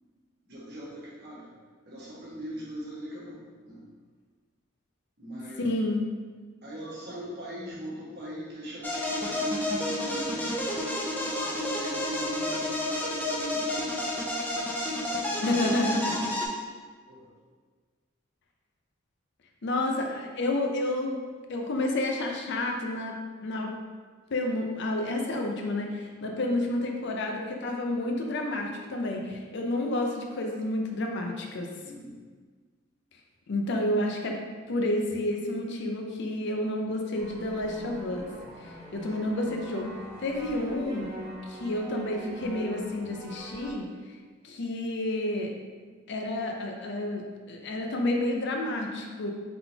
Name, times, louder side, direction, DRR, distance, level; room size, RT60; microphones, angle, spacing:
voice 1, 0.5-1.5 1.9-3.8 5.2-5.8 6.6-10.9 11.2-14.3 14.9-15.7 16.0-16.3 17.1-17.2 31.8-32.2 38.9-39.1, equal, 55° right, -7 dB, 1.4 m, -40 dB
voice 2, 5.6-6.1 15.4-16.3 19.6-21.2 21.5-23.7 24.3-31.7 33.5-34.4 34.7-38.3 38.6-41.1 41.5-43.9 44.4-45.5 46.1-47.2 47.5-49.3, left 1 dB, 60° left, 2 dB, 0.5 m, -30 dB
sound 1, 8.8-16.5, left 1 dB, 10° left, 0.5 m, -30 dB
sound 2, 37.2-43.7, right 1 dB, 20° right, 0.8 m, -43 dB
3.9 x 3.8 x 2.8 m, 1.5 s
head